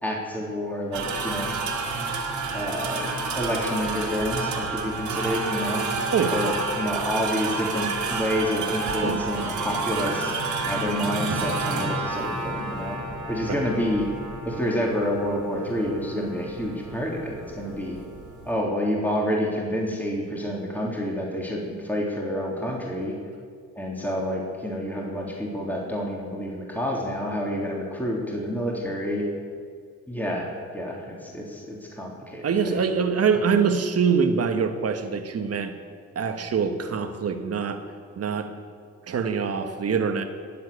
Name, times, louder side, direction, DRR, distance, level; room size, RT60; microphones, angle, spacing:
voice 1, 0.0-1.6 2.5-5.8 6.3-10.4 10.7-13.0 13.3-14.1 14.5-18.0 18.5-23.2 23.8-29.3 30.1-32.8, equal, 5° left, -2 dB, 3.5 m, -28 dB
sound 1, 0.9-18.5, right 3 dB, 75° right, 2.9 m, -30 dB
voice 2, 32.4-35.7 36.1-37.8 38.1-38.5 39.1-40.2, right 6 dB, 50° right, 7 dB, 1.7 m, -24 dB
20.0 x 7.9 x 8.5 m, 2.1 s
cardioid pair, 90°, 30 cm